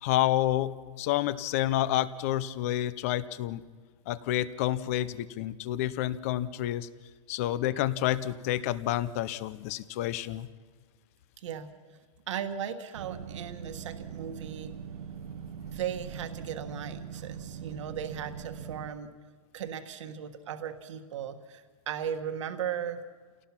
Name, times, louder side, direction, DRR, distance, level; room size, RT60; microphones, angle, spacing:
voice 1, 0.0-3.6 4.1-6.9 7.3-10.5, left 13 dB, 25° left, 16 dB, 0.5 m, -29 dB
voice 2, 11.4-12.0 12.3-14.7 15.7-19.1 19.5-23.0, right 8 dB, 55° right, 7 dB, 1.5 m, -37 dB
sound 1, 12.9-18.9, right 8 dB, 85° right, 1.2 m, -41 dB
29.0 x 18.0 x 5.9 m, 1.5 s
supercardioid pair, 175°, 19 cm